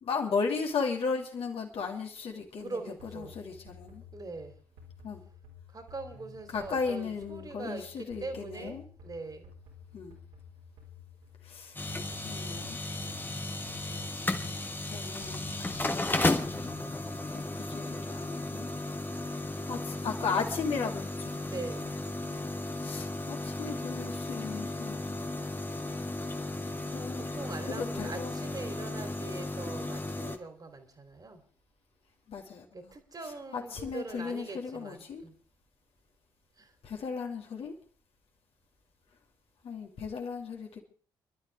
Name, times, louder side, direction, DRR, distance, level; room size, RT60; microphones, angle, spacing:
voice 1, 0.0-2.8 3.1-4.0 5.0-5.2 6.5-8.8 9.9-10.2 11.4-11.8 12.2-12.8 14.9-16.8 17.3-18.7 19.7-21.4 22.8-25.2 26.9-27.3 27.7-28.3 32.3-32.9 33.5-35.2 36.8-37.7 39.6-40.8, left 5 dB, 50° left, 1 dB, 2.8 m, -36 dB
voice 2, 2.3-3.4 4.1-4.5 5.7-9.5 21.4-22.0 27.2-31.4 32.7-35.4 36.6-36.7, right 3 dB, 30° right, 7 dB, 3.1 m, -42 dB
sound 1, 3.0-17.2, left 4 dB, 70° right, 3.9 m, -52 dB
sound 2, 11.8-30.4, left 2 dB, 15° left, 1.5 m, -35 dB
25.5 x 12.0 x 3.5 m, 0.43 s
figure-of-eight pair, 40°, 12 cm